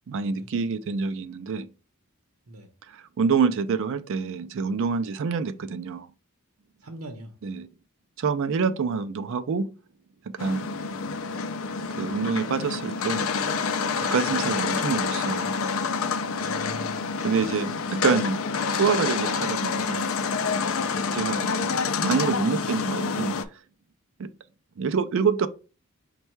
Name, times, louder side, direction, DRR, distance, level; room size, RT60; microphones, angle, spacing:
voice 1, 0.1-1.7 2.9-6.1 7.4-7.7 8.2-9.7 10.4-10.7 12.0-13.3 14.0-15.6 17.2-18.4 18.7-20.1 21.1-23.6 24.2-24.3 24.8-25.5, right 5 dB, 60° right, 0.4 m, -27 dB
voice 2, 6.8-7.3 10.9-11.1 16.3-17.5 20.9-21.2, right 1 dB, 80° right, 0.8 m, -44 dB
sound 1, 10.4-23.4, left 5 dB, 65° left, 0.4 m, -28 dB
5.3 x 2.3 x 4.5 m
head